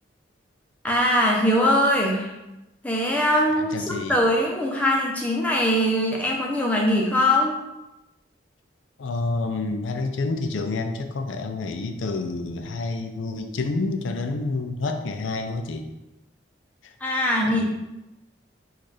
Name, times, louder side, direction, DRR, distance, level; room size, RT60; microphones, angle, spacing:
voice 1, 0.8-2.3 2.8-7.5 17.0-17.6, left 1 dB, 10° left, -2 dB, 0.6 m, -22 dB
voice 2, 3.6-4.2 9.0-15.9 16.8-16.9 17.4-17.6, left 3 dB, 85° left, 6 dB, 0.5 m, -28 dB
4.3 x 2.4 x 4.8 m, 0.97 s
head